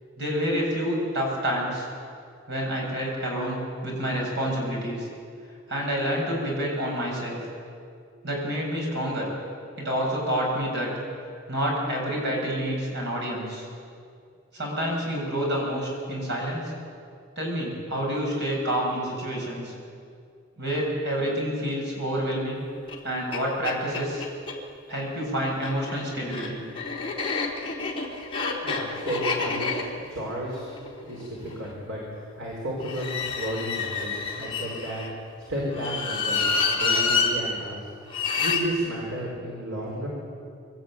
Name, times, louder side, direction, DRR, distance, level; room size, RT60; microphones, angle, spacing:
voice 1, 0.2-1.9 2.5-3.6 3.8-5.1 5.7-7.4 8.2-9.3 9.8-10.9 11.5-13.7 14.5-16.6 17.4-19.7 20.6-22.6 23.0-24.3 24.9-26.6, equal, 60° right, -2 dB, 7.9 m, -28 dB
sound 1, 22.9-23.0 23.3-23.4 23.6-24.6 25.5-31.7 32.8-35.1 35.7-37.3 38.1-38.6, left 4 dB, 30° left, 3.7 m, -28 dB
voice 2, 28.6-30.7 31.0-35.1 35.5-37.9 38.4-40.1, right 1 dB, 80° right, -4 dB, 5.0 m, -33 dB
25.0 x 13.5 x 9.3 m, 2.3 s
head